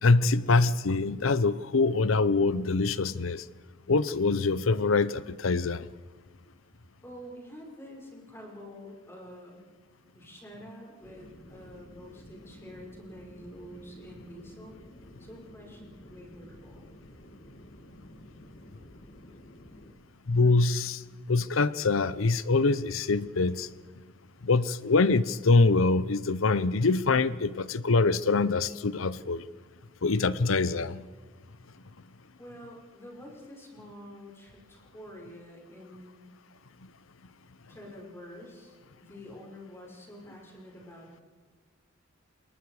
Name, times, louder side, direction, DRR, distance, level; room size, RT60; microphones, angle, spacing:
voice 1, 0.0-3.4 3.9-5.9 20.3-21.0 21.3-23.7 24.4-29.4 30.0-31.0, left 3 dB, 75° left, 0.7 m, -24 dB
voice 2, 7.0-9.7 10.1-14.8 15.2-16.9 32.4-36.3 37.7-41.2, equal, 10° left, 5.6 m, -47 dB
sound 1, 11.0-19.9, left 1 dB, 45° left, 1.8 m, -51 dB
28.5 x 21.5 x 4.9 m
head